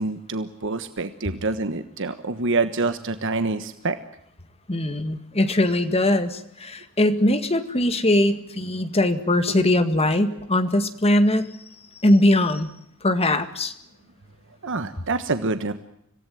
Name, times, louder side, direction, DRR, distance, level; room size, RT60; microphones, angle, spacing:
voice 1, 0.0-4.0 14.6-15.7, right 3 dB, 60° right, 9 dB, 1.3 m, -26 dB
voice 2, 4.7-11.5 12.0-12.7 13.0-13.7, left 1 dB, 30° left, 10 dB, 1.9 m, -21 dB
26.0 x 17.5 x 9.3 m, 0.74 s
head